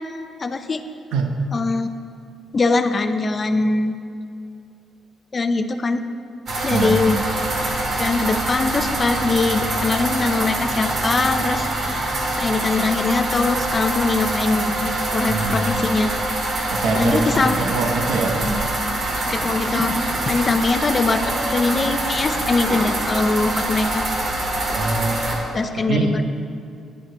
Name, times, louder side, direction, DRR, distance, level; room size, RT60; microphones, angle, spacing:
voice 1, 0.4-0.8 1.5-1.9 2.5-4.0 5.3-6.1 6.6-7.2 8.0-11.7 12.4-16.1 17.0-17.6 19.3-19.9 20.3-24.0 25.5-26.3, left 3 dB, 35° left, 10 dB, 0.5 m, -22 dB
sound 1, 6.5-25.3, right 1 dB, 55° right, 1.8 m, -24 dB
voice 2, 15.3-15.6 16.7-18.4 24.7-25.3 25.8-26.1, right 3 dB, 90° right, 3 dB, 1.0 m, -23 dB
9.8 x 6.5 x 4.6 m, 2.4 s
cardioid pair, 90°, 0 cm